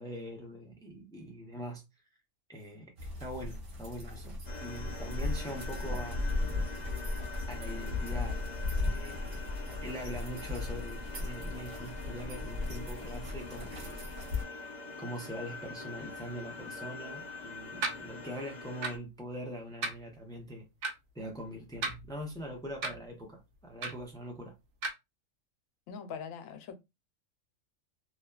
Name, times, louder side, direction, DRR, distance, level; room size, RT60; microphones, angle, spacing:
voice 1, 0.0-1.8 2.5-6.3 7.5-8.5 8.9-9.5 9.8-14.1 15.0-20.7 21.1-24.6, equal, 5° left, 0.4 m, -43 dB
sound 1, 3.0-14.4, left 2 dB, 50° right, 1.1 m, -36 dB
sound 2, 4.5-19.0, left 3 dB, 45° left, 0.7 m, -45 dB
sound 3, 17.8-18.0 18.8-19.0 19.8-20.0 20.8-20.9 21.7-22.3 22.8-23.0 23.8-24.1 24.8-24.9, right 3 dB, 85° right, 1.0 m, -34 dB
voice 2, 25.9-26.7, left 6 dB, 85° left, 1.0 m, -42 dB
2.8 x 2.2 x 2.3 m
omnidirectional pair, 1.4 m